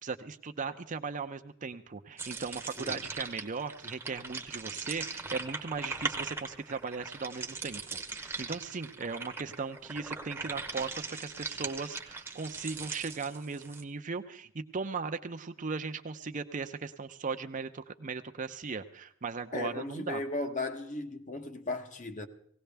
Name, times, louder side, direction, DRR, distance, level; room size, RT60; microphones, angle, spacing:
voice 1, 0.0-20.2, right 4 dB, 35° right, 0.6 m, -38 dB
sound 1, 2.2-13.8, right 4 dB, 10° right, 0.9 m, -40 dB
voice 2, 19.5-22.3, left 2 dB, 35° left, 1.0 m, -36 dB
19.0 x 17.0 x 3.4 m
head